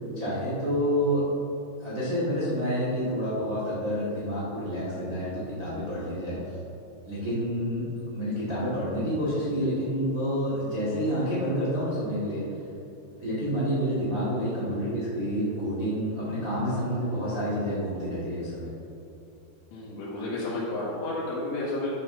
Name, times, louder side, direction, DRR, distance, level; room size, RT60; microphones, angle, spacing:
voice 1, 0.1-1.3 1.8-6.5 7.1-12.4 13.2-18.7, equal, 80° right, -9 dB, 0.7 m, -28 dB
voice 2, 19.7-21.9, left 2 dB, 85° left, -10 dB, 4.3 m, -31 dB
13.0 x 6.9 x 3.9 m, 2.7 s
omnidirectional pair, 5.8 m